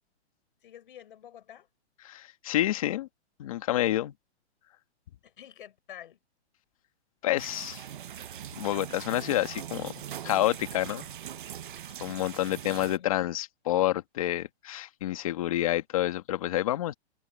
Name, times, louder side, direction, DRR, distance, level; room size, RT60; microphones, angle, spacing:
voice 1, 0.6-1.7 5.2-6.2 12.3-13.2, left 10 dB, 50° left, 4.6 m, -49 dB
voice 2, 2.0-3.1 3.4-4.1 7.2-7.8 8.6-9.9 10.2-11.1 12.0-16.9, left 14 dB, 30° left, 1.6 m, -28 dB
sound 1, 7.4-13.0, right 10 dB, 45° right, 0.8 m, -41 dB
hypercardioid pair, 175°, 34 cm